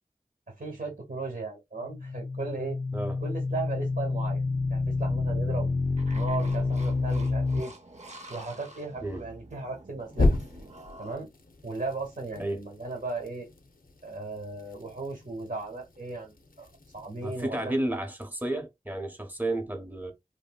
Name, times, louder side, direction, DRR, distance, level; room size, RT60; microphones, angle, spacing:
voice 1, 0.5-2.8 3.2-4.4 4.7-5.7 6.1-7.7 8.3-10.4 11.0-11.3 11.6-13.5 14.0-17.7, right 3 dB, 70° right, 1.0 m, -36 dB
sound 1, 1.8-7.6 10.1-10.9, left 3 dB, 65° left, 0.5 m, -27 dB
sound 2, 6.0-11.1, right 2 dB, 45° right, 0.6 m, -48 dB
voice 2, 16.9-20.1, right 1 dB, 10° right, 0.8 m, -32 dB
3.0 x 2.7 x 2.2 m
wide cardioid pair, 40°, 16 cm